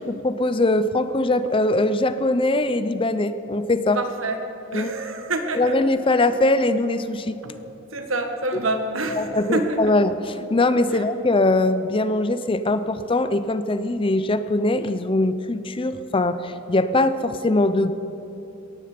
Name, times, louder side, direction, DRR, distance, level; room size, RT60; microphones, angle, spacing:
voice 1, 0.0-4.0 4.7-4.9 5.5-7.4 9.2-17.9, left 2 dB, 25° left, 12 dB, 0.5 m, -21 dB
voice 2, 3.9-4.4 4.7-5.8 7.4-7.6 7.9-10.0 10.9-11.0, right 2 dB, 85° right, 5 dB, 1.7 m, -27 dB
17.5 x 14.5 x 5.2 m, 2.9 s
head